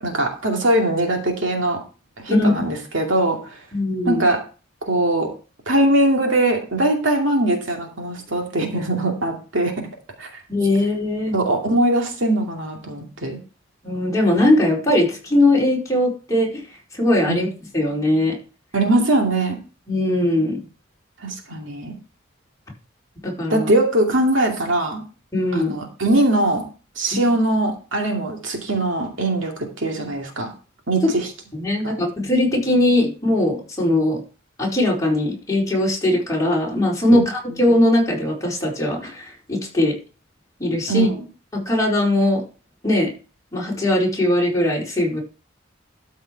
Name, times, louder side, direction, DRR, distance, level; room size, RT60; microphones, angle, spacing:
voice 1, 0.0-1.8 2.2-3.6 4.0-4.4 4.8-5.3 5.7-9.9 10.2-10.3 11.3-13.4 17.3-17.5 18.7-19.6 21.2-21.9 23.5-25.0 25.5-26.6 27.0-30.5 30.9-31.3 31.8-31.9 37.1-37.2 40.9-41.2, right 1 dB, 70° right, 1 dB, 2.4 m, -21 dB
voice 2, 3.7-4.2 10.5-11.3 13.8-16.6 16.9-17.5 17.7-18.4 19.9-20.6 23.2-23.7 25.3-25.7 27.1-27.2 31.5-34.2 34.6-39.9 40.6-41.1 41.5-42.4 42.8-43.1 43.5-45.2, left 1 dB, 15° left, -4 dB, 4.5 m, -20 dB
12.5 x 5.5 x 4.6 m, 0.35 s
head